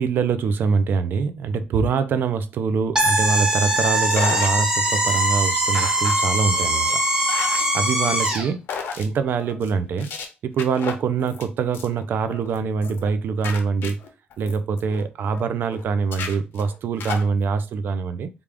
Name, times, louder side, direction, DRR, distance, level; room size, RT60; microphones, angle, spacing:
voice 1, 0.0-6.9 7.7-8.6 9.0-10.1 10.4-14.0 14.4-18.3, right 5 dB, 65° right, 0.4 m, -24 dB
sound 1, 3.0-8.5, right 1 dB, 20° right, 0.9 m, -21 dB
sound 2, 4.1-4.5 4.9-5.3 5.7-6.2 6.5-6.9 7.3-7.7 8.0-8.4 8.7-9.1 9.4-9.7 10.0-10.2 10.6-11.4 11.7-12.0 12.3-12.6 12.8-13.1 13.4-15.4 15.7-15.8 16.1-17.2, left 6 dB, 70° left, 0.7 m, -33 dB
3.5 x 2.4 x 3.4 m
cardioid pair, 110°, 4 cm